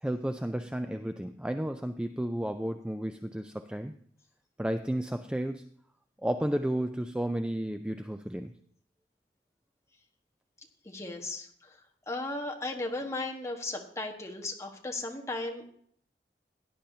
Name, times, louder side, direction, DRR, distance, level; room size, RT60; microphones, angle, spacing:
voice 1, 0.0-4.0 4.6-5.7 6.2-8.6, right 1 dB, 5° right, 8 dB, 0.3 m, -32 dB
voice 2, 10.8-11.8 12.1-15.7, left 2 dB, 15° left, 0 dB, 1.3 m, -36 dB
17.0 x 10.0 x 2.8 m, 0.64 s
head